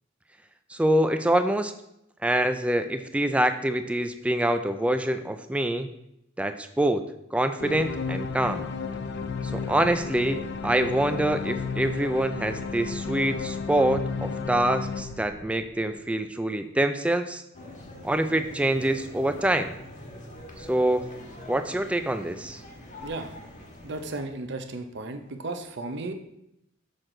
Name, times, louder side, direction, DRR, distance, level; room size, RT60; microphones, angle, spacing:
voice 1, 0.7-1.7 2.2-5.9 6.4-7.0 7.3-8.6 9.5-17.4 18.0-19.7 20.6-21.1 21.5-22.6, right 1 dB, 5° right, 9 dB, 0.3 m, -25 dB
sound 1, 7.6-16.0, left 4 dB, 55° left, 0.5 m, -33 dB
sound 2, 17.5-24.2, left 1 dB, 40° left, 1.3 m, -44 dB
voice 2, 23.0-23.3 23.8-26.1, right 2 dB, 60° right, 7 dB, 0.7 m, -34 dB
6.4 x 6.1 x 3.8 m, 0.81 s
head